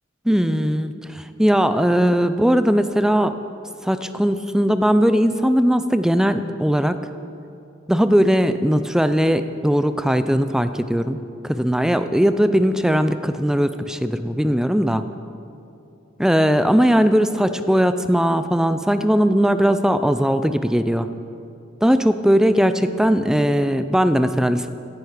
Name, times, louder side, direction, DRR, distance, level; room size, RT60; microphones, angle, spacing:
voice 1, 0.3-3.3 3.8-7.0 7.9-11.2 11.4-15.0 16.2-21.1 21.8-24.7, equal, 5° right, 10 dB, 0.4 m, -19 dB
15.5 x 10.5 x 5.0 m, 2.6 s
head